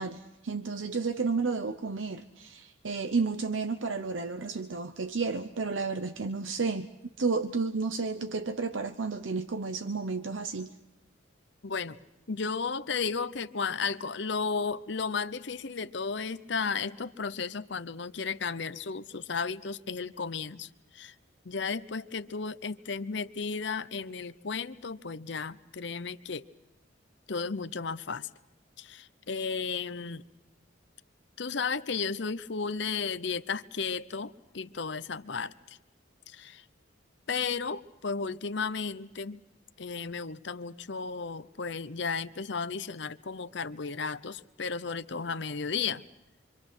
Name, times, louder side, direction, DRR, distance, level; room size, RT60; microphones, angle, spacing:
voice 1, 0.0-6.9 7.2-10.7, right 4 dB, 75° right, 9 dB, 0.8 m, -32 dB
voice 2, 11.6-12.0 12.3-21.1 21.4-26.4 27.3-28.3 28.8-30.2 31.4-35.8 36.3-36.6 37.3-39.4 39.8-46.0, left 5 dB, 60° left, 13 dB, 0.8 m, -34 dB
26.0 x 25.5 x 6.1 m, 0.89 s
head